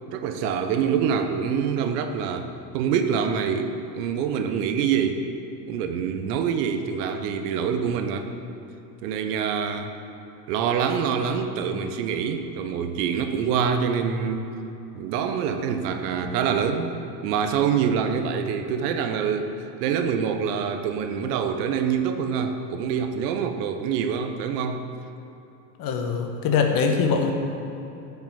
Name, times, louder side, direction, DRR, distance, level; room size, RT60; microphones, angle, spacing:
voice 1, 0.1-2.5 2.7-5.2 5.6-8.3 9.0-9.9 10.5-14.4 14.9-19.5 19.8-24.8, right 7 dB, 70° right, 7 dB, 1.1 m, -25 dB
voice 2, 25.8-27.3, left 5 dB, 45° left, 3 dB, 1.4 m, -22 dB
8.8 x 6.0 x 7.4 m, 2.9 s
supercardioid pair, 110°, 49 cm